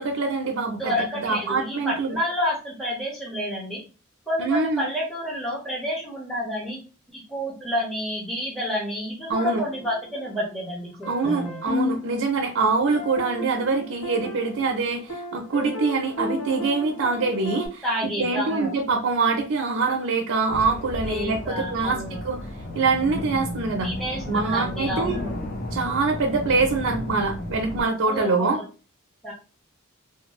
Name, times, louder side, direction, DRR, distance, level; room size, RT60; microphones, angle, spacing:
voice 1, 0.0-1.0 1.2-2.2 4.4-4.9 9.3-9.6 11.1-17.8 18.2-22.0 22.2-22.4 22.7-23.9 24.3-25.2 25.7-28.6, right 4 dB, 60° right, 0 dB, 0.5 m, -24 dB
voice 2, 0.8-3.8 4.3-6.8 7.1-11.6 17.8-18.7 21.1-22.2 23.8-25.4 28.1-28.6 29.2-29.3, equal, ahead, -4 dB, 0.6 m, -29 dB
sound 1, 9.3-10.6 11.0-17.7, left 1 dB, 75° left, 1.2 m, -34 dB
sound 2, 20.5-27.8, left 1 dB, 40° left, 0.6 m, -33 dB
2.5 x 2.2 x 2.9 m, 0.35 s
head